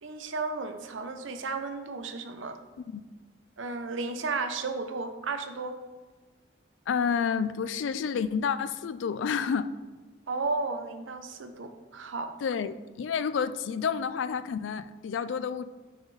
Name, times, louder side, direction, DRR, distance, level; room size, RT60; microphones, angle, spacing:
voice 1, 0.0-2.6 3.6-5.8 10.3-12.3, right 3 dB, 90° right, 7 dB, 0.6 m, -33 dB
voice 2, 6.9-9.7 12.4-15.6, left 6 dB, 80° left, 14 dB, 0.3 m, -29 dB
8.6 x 4.0 x 3.2 m, 1.3 s
head